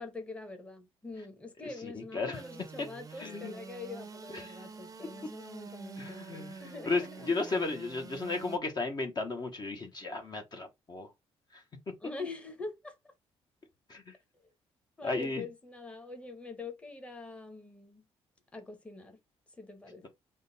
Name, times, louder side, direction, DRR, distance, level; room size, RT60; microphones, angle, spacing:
voice 1, 0.0-7.7 12.0-12.9 15.0-18.0 18.5-19.2 19.6-20.1, left 3 dB, 10° left, 0.9 m, -44 dB
voice 2, 1.8-2.4 2.8-2.9 3.2-3.6 4.3-4.6 6.0-11.1 11.5-11.6 13.9-14.1 15.0-15.5, left 3 dB, 35° left, 0.9 m, -35 dB
Engine / Sawing, 2.3-8.6, right 4 dB, 30° right, 0.6 m, -47 dB
3.6 x 2.2 x 3.8 m
cardioid pair, 100°, 11 cm